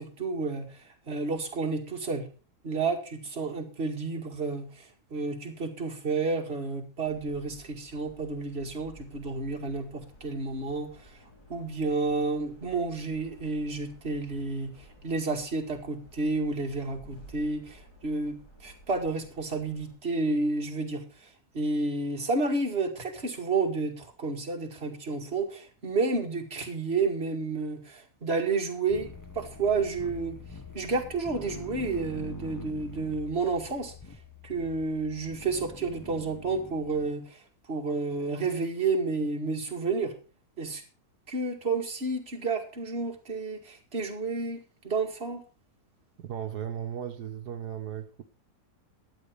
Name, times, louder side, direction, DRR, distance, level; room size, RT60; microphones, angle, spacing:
voice 1, 0.0-2.2 2.6-11.1 11.5-21.3 21.5-30.4 30.7-33.9 34.4-37.4 37.7-40.1 40.6-40.8 41.3-45.4, right 3 dB, 40° right, 2 dB, 2.3 m, -31 dB
sound 1, 7.0-20.0, left 1 dB, 75° left, 5.2 m, -54 dB
sound 2, 28.9-37.1, left 2 dB, 15° left, 0.9 m, -45 dB
voice 2, 46.2-48.2, right 9 dB, 80° right, 6 dB, 1.6 m, -36 dB
13.0 x 9.3 x 5.1 m, 0.36 s
omnidirectional pair, 1.7 m